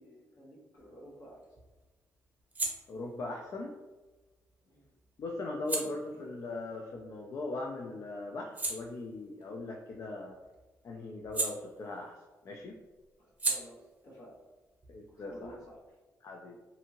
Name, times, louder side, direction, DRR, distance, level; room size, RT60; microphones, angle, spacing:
voice 1, 0.0-1.4 4.6-4.9 5.6-6.2 13.2-14.5 15.1-16.0, equal, 75° left, -5 dB, 1.1 m, -53 dB
sound 1, 0.8-7.7 8.1-12.3 12.5-16.0, right 3 dB, 25° right, 0.6 m, -41 dB
voice 2, 2.9-3.7 5.2-10.4 10.8-12.2 12.4-12.8 14.9-15.6 16.2-16.6, left 2 dB, 55° left, 0 dB, 0.3 m, -39 dB
2.7 x 2.5 x 2.8 m, 1.2 s
cardioid pair, 90°, 6 cm